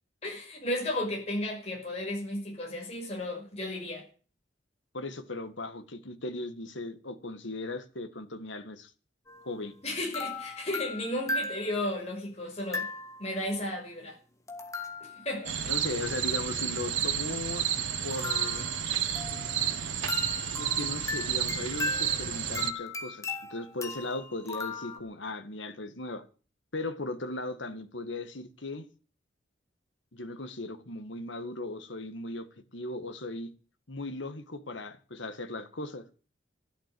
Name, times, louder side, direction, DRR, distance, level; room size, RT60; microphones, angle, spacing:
voice 1, 0.2-4.0 9.8-12.9 13.2-14.2 15.0-15.6, left 1 dB, 35° left, 6.0 m, -34 dB
voice 2, 4.9-8.9 9.4-9.7 15.7-18.7 20.6-26.2 26.7-28.9 30.1-33.5 33.9-36.1, left 2 dB, 75° left, 1.9 m, -37 dB
sound 1, 9.3-9.5 10.1-12.1 12.7-13.4 14.5-15.5 18.1-19.7 20.1-25.0, left 3 dB, 15° left, 1.9 m, -37 dB
sound 2, 15.4-22.7, right 9 dB, 85° right, 1.6 m, -31 dB
13.0 x 11.5 x 7.9 m
head